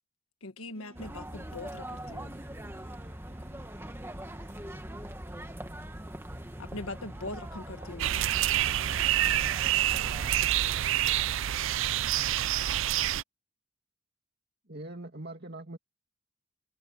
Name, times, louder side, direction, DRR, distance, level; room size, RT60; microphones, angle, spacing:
voice 1, 0.4-2.3 6.6-8.2, left 2 dB, 85° left, 1.5 m, -41 dB
sound 1, 0.7-8.9, equal, 30° right, 7.3 m, -56 dB
sound 2, 0.9-10.5, right 1 dB, 10° right, 1.5 m, -42 dB
voice 2, 7.7-8.9 9.2-10.4, left 3 dB, 65° left, 8.0 m, -60 dB
sound 3, 8.0-13.2, right 12 dB, 65° right, 0.4 m, -27 dB
voice 3, 14.7-15.8, right 2 dB, 50° right, 2.4 m, -42 dB
head